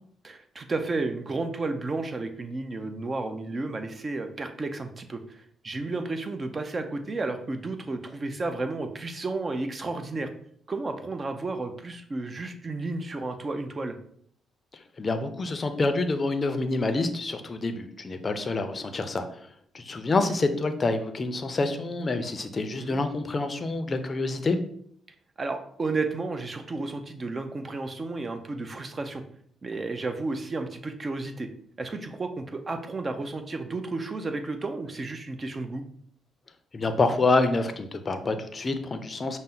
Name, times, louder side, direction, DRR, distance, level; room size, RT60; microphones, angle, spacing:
voice 1, 0.2-10.3 10.7-14.0 22.8-23.0 25.4-29.2 29.6-31.5 31.8-35.8, right 3 dB, 30° right, 7 dB, 0.5 m, -32 dB
voice 2, 15.0-19.3 19.7-24.6 36.7-39.4, left 3 dB, 35° left, 8 dB, 0.5 m, -27 dB
5.4 x 2.0 x 3.8 m, 0.65 s
cardioid pair, 90°, 0 cm